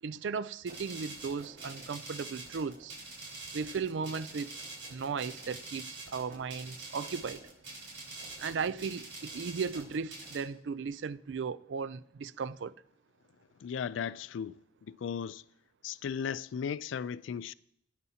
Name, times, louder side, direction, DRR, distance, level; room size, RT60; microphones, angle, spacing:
voice 1, 0.0-2.9 3.5-4.6 4.9-7.4 8.4-12.7, right 5 dB, 70° right, 0.4 m, -36 dB
sound 1, 0.7-10.4, right 2 dB, 85° right, 4.8 m, -45 dB
voice 2, 13.6-14.6 14.9-15.4 15.8-17.5, left 7 dB, 75° left, 0.3 m, -36 dB
19.0 x 9.4 x 2.8 m
head